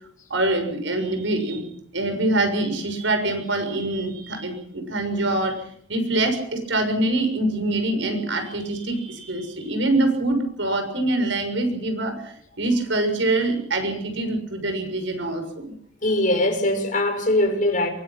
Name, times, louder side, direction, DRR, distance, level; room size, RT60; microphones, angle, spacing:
voice 1, 0.3-1.6 1.9-5.6 5.9-15.7, right 2 dB, 70° right, 6.6 m, -24 dB
voice 2, 16.0-17.9, left 1 dB, 40° left, 6.0 m, -21 dB
24.0 x 21.5 x 6.0 m
head